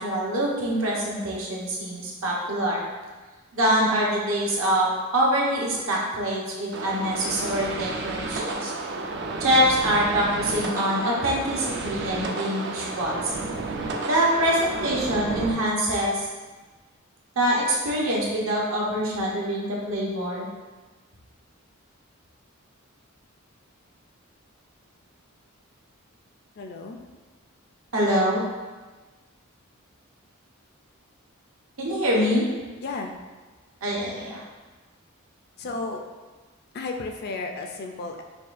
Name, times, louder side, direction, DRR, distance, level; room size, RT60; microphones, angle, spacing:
voice 1, 0.0-2.8 3.5-4.9 5.1-8.7 9.4-13.3 14.0-16.3 17.4-20.5 27.9-28.4 31.8-32.4 33.8-34.4, equal, 70° right, -4 dB, 0.9 m, -24 dB
sound 1, 6.7-15.5, right 3 dB, 55° right, 0.4 m, -32 dB
voice 2, 26.6-27.0 32.8-33.1 35.6-36.0 36.7-38.2, left 3 dB, 50° left, 3 dB, 0.4 m, -33 dB
5.3 x 2.3 x 2.5 m, 1.3 s
head